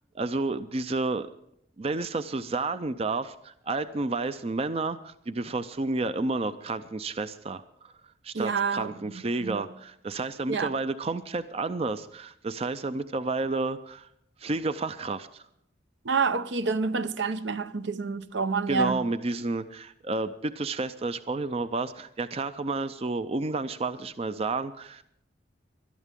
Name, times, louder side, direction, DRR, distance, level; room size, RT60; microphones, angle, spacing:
voice 1, 0.1-1.3 1.8-7.9 8.2-14.1 14.4-15.4 18.7-25.0, right 3 dB, 30° right, 0.5 m, -31 dB
voice 2, 8.3-8.9 9.4-9.7 10.5-10.7 16.0-19.0, right 4 dB, 70° right, 0.7 m, -28 dB
21.0 x 12.5 x 3.7 m
head